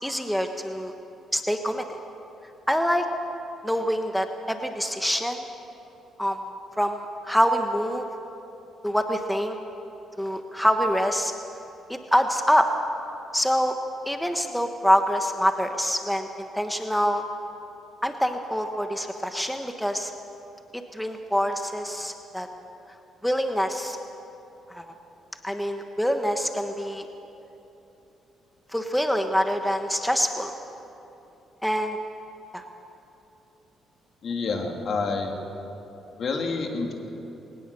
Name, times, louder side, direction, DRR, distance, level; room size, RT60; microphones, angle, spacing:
voice 1, 0.0-0.9 1.3-2.0 2.7-3.0 3.6-5.5 6.2-6.4 6.8-8.1 8.8-9.6 10.2-11.3 11.9-12.7 13.3-13.7 14.1-17.2 18.0-20.1 20.7-22.5 23.2-24.0 24.7-24.8 25.4-27.1 28.7-30.5 31.6-32.0 32.5-32.6, equal, ahead, 5 dB, 1.3 m, -25 dB
voice 2, 34.2-35.3 36.2-36.9, left 4 dB, 55° left, 2 dB, 2.8 m, -28 dB
21.5 x 19.0 x 7.0 m, 3.0 s
cardioid pair, 90°, 0 cm